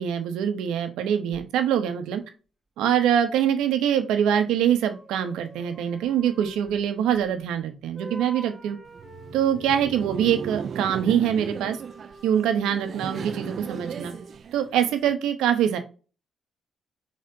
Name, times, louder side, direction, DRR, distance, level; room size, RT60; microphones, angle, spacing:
voice 1, 0.0-2.2 2.8-8.8 9.3-11.8 12.2-14.1 14.5-15.8, right 9 dB, 90° right, 1.1 m, -24 dB
sound 1, 1.3-1.4 4.8-7.6 7.9-10.8 11.4-14.4, right 1 dB, 5° right, 1.9 m, -46 dB
Laughter, 8.9-15.1, right 7 dB, 55° right, 0.4 m, -37 dB
4.3 x 4.2 x 5.3 m
cardioid pair, 90°, 0 cm